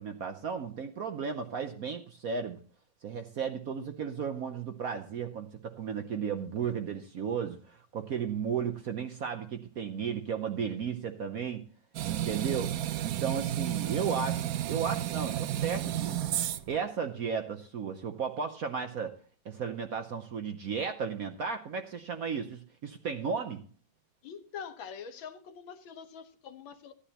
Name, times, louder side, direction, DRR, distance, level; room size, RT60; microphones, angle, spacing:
voice 1, 0.0-2.6 3.0-11.6 12.1-16.2 16.7-19.2 19.4-23.6, right 6 dB, 60° right, 1.0 m, -34 dB
sound 1, 11.9-16.8, right 12 dB, 80° right, 0.8 m, -32 dB
voice 2, 24.2-26.9, left 7 dB, 75° left, 1.7 m, -44 dB
15.5 x 10.0 x 2.8 m
omnidirectional pair, 2.2 m